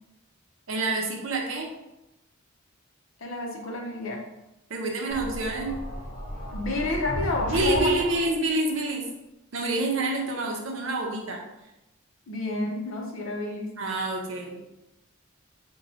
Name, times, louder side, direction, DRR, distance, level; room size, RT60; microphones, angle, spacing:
voice 1, 0.7-1.7 4.7-5.8 7.5-9.1 9.5-11.4 13.8-14.6, right 2 dB, 65° right, 1 dB, 0.6 m, -27 dB
voice 2, 3.2-4.2 6.5-8.2 12.3-13.7, left 2 dB, 65° left, 1 dB, 0.6 m, -30 dB
sound 1, 5.1-8.4, equal, 35° left, 1.1 m, -34 dB
4.1 x 2.2 x 2.7 m, 0.91 s
head